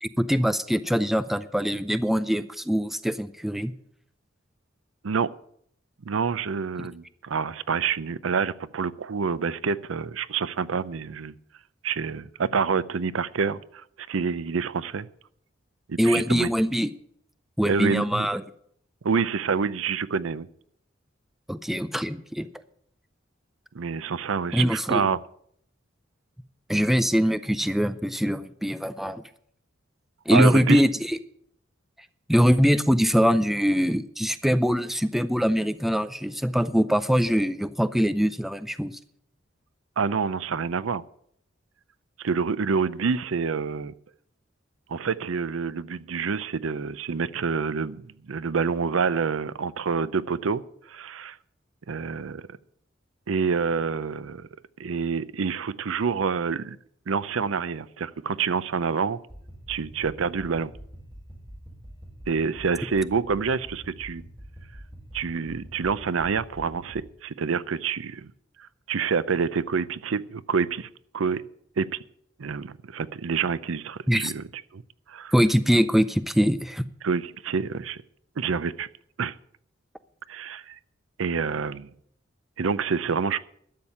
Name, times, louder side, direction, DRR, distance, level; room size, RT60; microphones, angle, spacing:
voice 1, 0.0-3.7 16.0-16.9 17.6-18.4 21.5-22.5 24.5-25.0 26.7-29.2 30.3-31.2 32.3-39.0 74.1-74.3 75.3-76.8, equal, ahead, 0.5 m, -23 dB
voice 2, 6.1-11.3 11.8-15.1 15.9-16.5 17.7-18.3 19.0-20.5 23.7-25.2 30.3-30.8 40.0-41.0 42.2-43.9 44.9-48.0 48.3-50.6 50.9-51.4 51.9-52.4 53.3-54.5 54.8-56.8 57.1-59.2 59.7-60.7 62.3-64.2 65.1-68.3 68.9-70.9 71.1-71.4 71.8-72.0 72.4-74.4 74.7-74.8 75.1-75.3 77.0-78.0 78.4-78.9 79.2-79.3 80.3-80.8 81.2-81.9 82.6-83.4, right 5 dB, 85° right, 0.6 m, -27 dB
sound 1, 59.2-67.0, equal, 25° right, 5.1 m, -45 dB
12.0 x 7.3 x 8.5 m
head